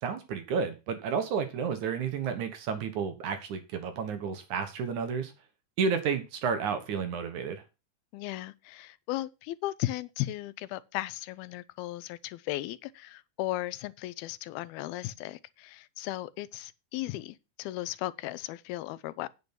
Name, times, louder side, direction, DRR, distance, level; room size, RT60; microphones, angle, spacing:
voice 1, 0.0-5.3 5.8-7.6, right 6 dB, 60° right, 2.4 m, -31 dB
voice 2, 8.1-19.3, left 16 dB, 90° left, 2.6 m, -36 dB
9.3 x 7.0 x 6.0 m
omnidirectional pair, 4.3 m